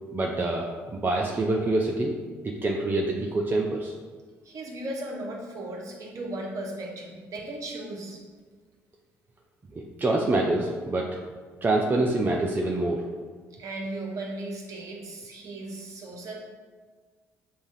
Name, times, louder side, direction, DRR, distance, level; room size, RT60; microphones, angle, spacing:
voice 1, 0.1-2.2 2.4-3.9 9.7-11.2 11.6-13.1, right 2 dB, 30° right, 0 dB, 0.5 m, -26 dB
voice 2, 4.4-8.2 13.6-16.3, right 2 dB, 55° right, -1 dB, 1.0 m, -36 dB
7.0 x 2.4 x 2.7 m, 1.5 s
hypercardioid pair, 55°, 7 cm